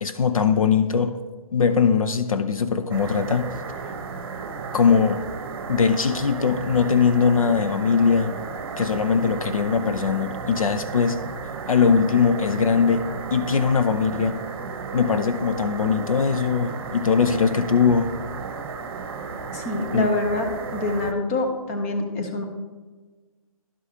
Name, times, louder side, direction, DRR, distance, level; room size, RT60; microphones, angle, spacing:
voice 1, 0.0-1.2 1.5-3.5 4.7-5.2 5.7-8.3 8.8-11.2 11.7-13.0 13.3-14.4 14.9-18.1 19.9-20.1, left 6 dB, 70° left, 9 dB, 0.6 m, -21 dB
sound 1, 2.9-21.1, right 5 dB, 45° right, 0.9 m, -34 dB
voice 2, 19.5-20.5 20.7-22.4, left 2 dB, 25° left, 3 dB, 1.0 m, -25 dB
12.5 x 4.8 x 2.9 m, 1.3 s
figure-of-eight pair, 150°, 19 cm